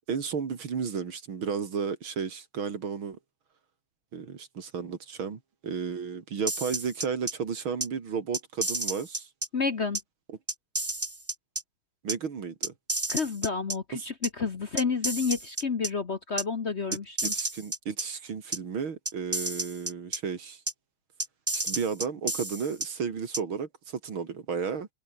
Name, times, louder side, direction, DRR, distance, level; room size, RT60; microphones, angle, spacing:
voice 1, 0.1-3.2 4.1-9.3 10.3-10.4 12.0-12.7 13.9-14.0 17.2-20.6 21.5-24.9, right 6 dB, 75° right, 3.3 m, -33 dB
sound 1, 6.5-7.3 7.8-7.9 8.3-9.5 9.9-10.0 10.5-11.6 12.1-12.2 12.6-13.7 14.2-14.3 14.8-15.9 16.4-16.5 16.9-18.0 18.5-18.6 19.0-20.2 20.7-20.8 21.2-22.9 23.3-23.4, right 2 dB, 15° right, 0.6 m, -31 dB
voice 2, 9.5-10.0 13.1-17.3, left 5 dB, 40° left, 1.2 m, -30 dB
omnidirectional pair, 2.3 m